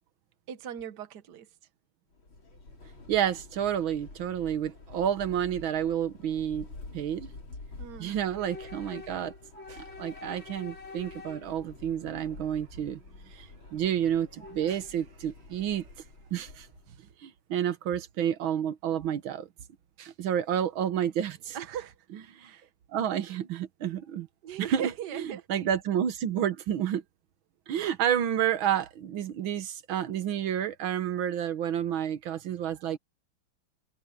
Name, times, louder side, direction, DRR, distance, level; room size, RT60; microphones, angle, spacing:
voice 1, 0.5-1.5 7.8-8.1 16.9-17.1 21.5-21.9 22.4-22.7 24.4-25.5, right 9 dB, 60° right, 1.7 m, -39 dB
Train / Subway metro underground, 2.1-17.0, left 3 dB, 80° left, 5.0 m, -47 dB
voice 2, 3.1-6.7 6.9-7.3 8.0-9.3 9.7-13.0 13.3-15.8 16.3-16.7 17.2-19.5 20.0-21.6 22.3-22.5 22.9-24.3 24.6-24.9 25.2-25.3 25.5-27.0 27.7-33.0, right 9 dB, 85° right, 1.9 m, -30 dB
omnidirectional pair, 2.2 m